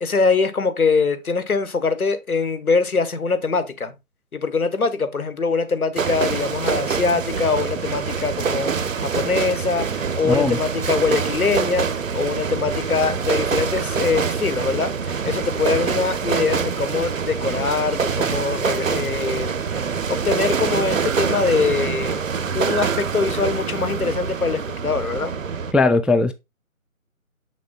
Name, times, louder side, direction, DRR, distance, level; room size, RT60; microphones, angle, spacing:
voice 1, 0.0-3.9 4.3-22.2 22.5-25.3, left 4 dB, 85° left, 1.5 m, -23 dB
sound 1, 6.0-25.7, right 6 dB, 65° right, 0.7 m, -25 dB
voice 2, 10.3-10.6 25.7-26.3, left 3 dB, 5° right, 0.3 m, -18 dB
7.2 x 6.1 x 2.4 m
figure-of-eight pair, 175°, 42 cm